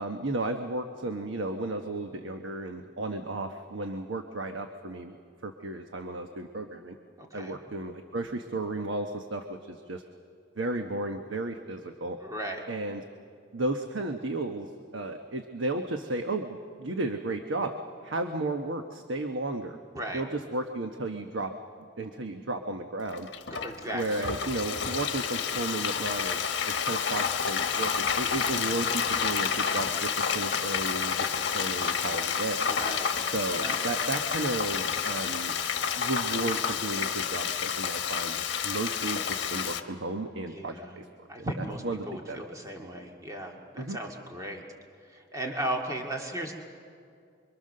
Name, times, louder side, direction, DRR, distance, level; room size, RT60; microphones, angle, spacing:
voice 1, 0.0-5.2 5.4-6.9 7.3-10.0 10.6-12.2 12.7-13.0 13.5-17.7 18.0-19.8 20.1-21.5 22.0-23.3 23.9-31.2 31.5-32.6 33.3-35.6 36.0-41.3 41.8-42.0 42.3-42.4 43.8-44.0, right 2 dB, 80° right, 5 dB, 1.1 m, -33 dB
voice 2, 7.2-7.6 12.2-12.6 19.9-20.2 23.5-24.3 32.7-33.9 40.5-41.0 41.3-44.6 45.0-46.5, right 1 dB, 15° right, 1 dB, 2.0 m, -36 dB
Frying (food), 23.1-39.8, left 7 dB, 60° left, 1.3 m, -30 dB
27.5 x 23.5 x 6.7 m, 2.3 s
head